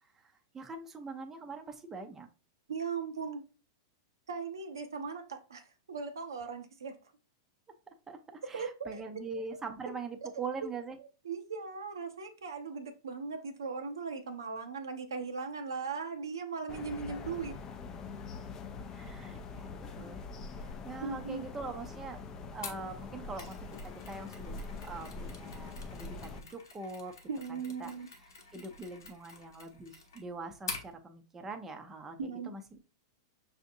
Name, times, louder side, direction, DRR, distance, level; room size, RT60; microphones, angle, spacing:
voice 1, 0.2-2.3 8.1-11.0 18.9-20.2 20.5-27.1 27.5-27.9 28.5-32.8, right 3 dB, 15° right, 0.6 m, -43 dB
voice 2, 2.7-3.4 4.3-7.0 8.5-9.0 11.0-17.5 21.0-21.5 27.3-28.1 32.2-32.5, right 5 dB, 90° right, 0.7 m, -38 dB
sound 1, 16.7-26.4, left 4 dB, 30° left, 0.5 m, -44 dB
Mechanisms, 22.6-30.9, left 4 dB, 90° left, 1.0 m, -47 dB
5.6 x 2.6 x 2.6 m
hypercardioid pair, 120°, 2 cm